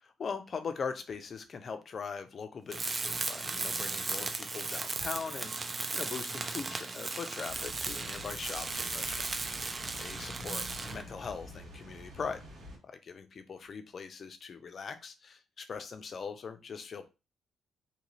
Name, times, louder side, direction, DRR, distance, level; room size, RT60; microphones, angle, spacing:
voice 1, 0.0-12.4 12.8-17.1, left 5 dB, 45° left, 8 dB, 0.5 m, -41 dB
Tools, 2.7-11.1, right 3 dB, 30° right, 0.4 m, -36 dB
Water, 7.5-12.8, equal, 80° right, 1.6 m, -48 dB
2.8 x 2.6 x 3.1 m, 0.28 s
cardioid pair, 90°, 0 cm